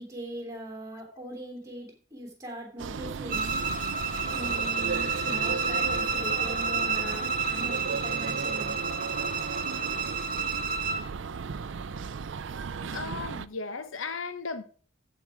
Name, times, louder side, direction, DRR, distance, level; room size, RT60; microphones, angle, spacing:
voice 1, 0.0-3.6 4.3-8.8, right 1 dB, 15° right, 3.0 m, -40 dB
sound 1, 2.8-13.5, right 5 dB, 65° right, 0.4 m, -35 dB
Bowed string instrument, 3.3-11.1, right 5 dB, 45° right, 0.9 m, -30 dB
voice 2, 12.9-14.6, left 4 dB, 85° left, 0.9 m, -36 dB
14.0 x 4.7 x 4.9 m
head